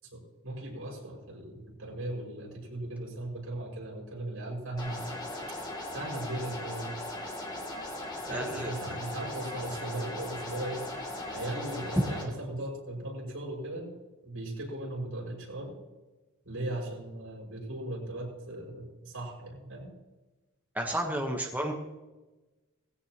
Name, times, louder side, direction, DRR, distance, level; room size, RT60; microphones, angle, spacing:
voice 1, 0.0-5.2 5.9-6.9 8.3-10.9 11.3-13.9 14.2-15.8 16.4-19.9, right 1 dB, 75° right, -2 dB, 6.1 m, -38 dB
sound 1, 4.8-12.2, left 1 dB, 20° left, 2.8 m, -38 dB
voice 2, 8.3-8.7 20.7-21.7, right 1 dB, 10° right, 1 dB, 1.2 m, -32 dB
19.0 x 16.5 x 3.0 m, 1.1 s
head